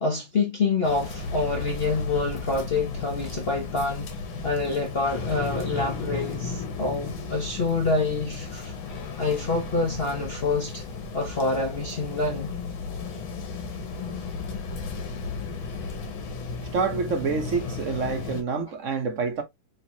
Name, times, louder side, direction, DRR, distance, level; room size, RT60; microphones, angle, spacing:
voice 1, 0.0-4.1 4.4-8.7 9.2-10.8 11.1-12.5, left 3 dB, 50° left, 0.7 m, -27 dB
sound 1, 0.8-18.4, left 4 dB, 80° left, 2.0 m, -34 dB
voice 2, 16.7-19.4, right 5 dB, 55° right, 0.8 m, -27 dB
4.5 x 3.9 x 2.6 m
omnidirectional pair, 2.2 m